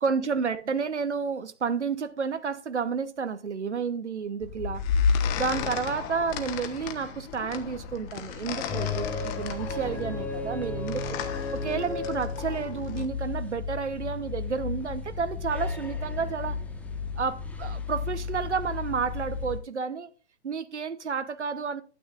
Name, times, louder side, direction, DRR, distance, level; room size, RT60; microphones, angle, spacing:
voice 1, 0.0-4.8 5.4-11.2 11.5-16.6 17.2-20.1 20.4-21.8, right 5 dB, 90° right, 0.9 m, -31 dB
sound 1, 4.4-13.1, left 6 dB, 25° left, 1.2 m, -32 dB
sound 2, 8.7-19.6, left 4 dB, 5° left, 1.1 m, -34 dB
12.5 x 9.4 x 2.4 m
figure-of-eight pair, 130°, 34 cm